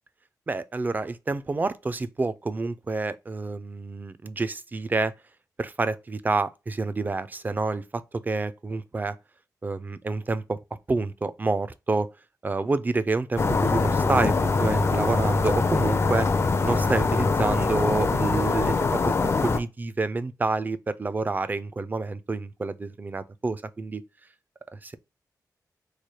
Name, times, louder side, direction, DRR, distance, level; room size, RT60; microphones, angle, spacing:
voice 1, 0.5-5.1 5.6-9.2 9.6-10.6 10.9-12.1 12.4-16.3 16.6-24.0 24.7-25.0, right 3 dB, 25° right, 0.3 m, -28 dB
sound 1, 13.4-19.6, left 4 dB, 40° left, 0.4 m, -23 dB
3.2 x 2.1 x 4.2 m
wide cardioid pair, 120°, 7 cm